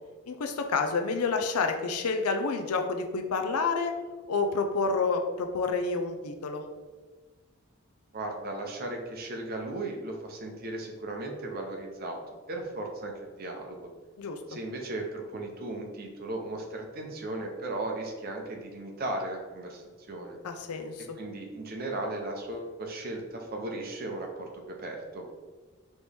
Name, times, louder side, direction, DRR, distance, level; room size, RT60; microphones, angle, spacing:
voice 1, 0.3-3.9 4.3-6.6 14.2-14.4 20.4-21.1, left 4 dB, 90° left, 5 dB, 0.5 m, -29 dB
voice 2, 8.1-12.2 12.5-13.9 14.5-20.4 21.2-25.2, right 2 dB, 45° right, 1 dB, 0.6 m, -36 dB
4.2 x 3.0 x 3.4 m, 1.3 s
head